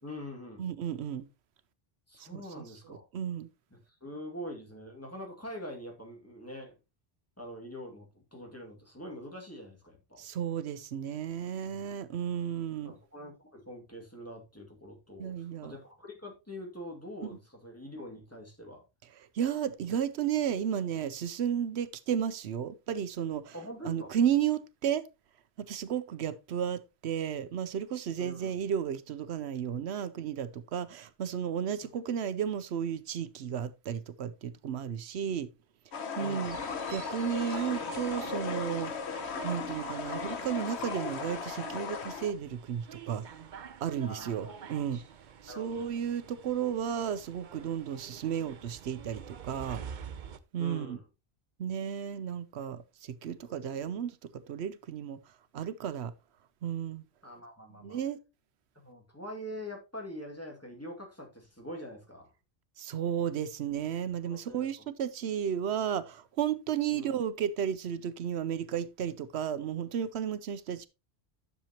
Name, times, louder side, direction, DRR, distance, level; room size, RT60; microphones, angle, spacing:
voice 1, 0.0-0.6 2.1-3.0 3.7-6.7 7.4-10.3 11.6-11.9 12.8-18.8 23.5-24.1 28.2-28.5 36.2-36.6 44.1-44.5 45.5-45.9 50.6-51.0 53.3-53.6 57.2-58.0 58.8-62.3 64.2-64.7 66.9-67.1, equal, 15° left, 2.2 m, -44 dB
voice 2, 0.6-1.3 2.2-3.5 10.2-12.9 15.2-15.7 19.3-23.5 23.8-25.1 25.6-35.5 36.2-36.6 36.9-39.1 39.4-45.0 45.4-49.8 50.5-51.0 51.6-55.2 55.5-56.1 56.6-57.0 57.8-58.2 62.8-70.9, right 9 dB, 85° right, 0.9 m, -33 dB
sound 1, 35.9-42.3, left 6 dB, 85° left, 1.2 m, -37 dB
sound 2, 36.4-50.4, right 7 dB, 50° right, 0.8 m, -47 dB
10.5 x 6.7 x 2.9 m
omnidirectional pair, 1.1 m